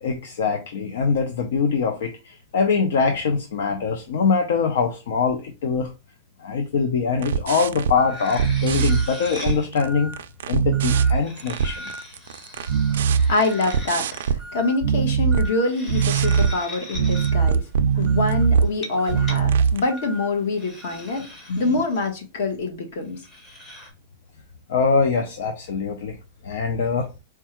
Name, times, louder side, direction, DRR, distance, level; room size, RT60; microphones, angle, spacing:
voice 1, 0.0-5.9 6.4-10.1 10.5-11.8 17.9-18.0 21.5-21.6 24.7-26.2 26.4-27.1, left 5 dB, 75° left, 0.6 m, -23 dB
sound 1, 7.2-8.0 8.3-9.8 10.1-14.4 14.8-15.5 15.9-16.6 16.9-18.7 19.1-19.8, right 7 dB, 80° right, 0.3 m, -21 dB
sound 2, 7.6-7.7 8.0-9.7 11.0-14.3 15.4-17.3 18.7-19.4 19.8-20.1 20.6-22.1 23.1-23.9, left 1 dB, 15° left, 0.8 m, -40 dB
sound 3, 8.0-8.5 8.9-9.4 9.8-10.3 10.7-11.2 11.6-12.1 12.6-13.0 13.5-13.9 14.4-14.8 15.3-15.7 16.2-16.6 17.1-21.3, equal, 10° right, 0.5 m, -41 dB
voice 2, 13.3-17.6 18.0-21.2 21.6-23.2, left 3 dB, 60° left, 1.2 m, -25 dB
4.5 x 2.3 x 2.9 m
supercardioid pair, 170°, 0 cm